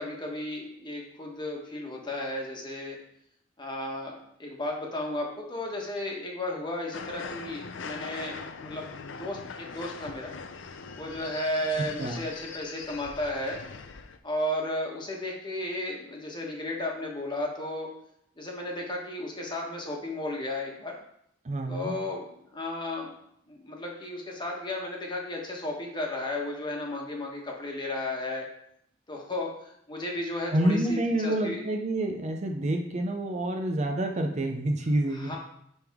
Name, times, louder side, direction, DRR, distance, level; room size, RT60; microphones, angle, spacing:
voice 1, 0.0-3.0 3.6-10.3 11.0-13.6 14.2-17.9 18.4-21.0 21.7-23.1 23.5-28.5 29.1-31.6 35.1-35.4, left 1 dB, 25° left, -1 dB, 1.3 m, -34 dB
sound 1, 6.9-14.2, left 5 dB, 70° left, 0.5 m, -41 dB
voice 2, 11.8-12.2 21.4-21.9 30.5-35.4, right 1 dB, 35° right, 3 dB, 0.6 m, -28 dB
10.5 x 3.5 x 3.5 m, 0.72 s
head